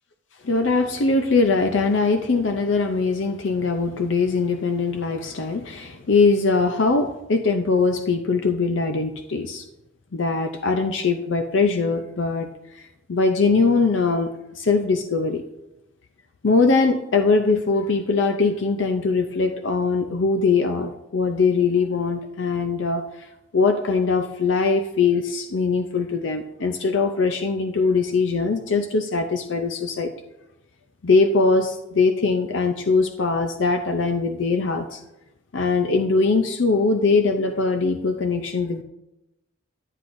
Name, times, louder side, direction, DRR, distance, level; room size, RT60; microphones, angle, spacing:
voice 1, 0.4-9.7 10.1-12.5 12.8-15.4 16.4-23.3 23.5-30.1 31.0-35.0 35.5-38.8, left 4 dB, 70° left, 6 dB, 0.6 m, -21 dB
10.0 x 9.7 x 2.6 m, 0.92 s
head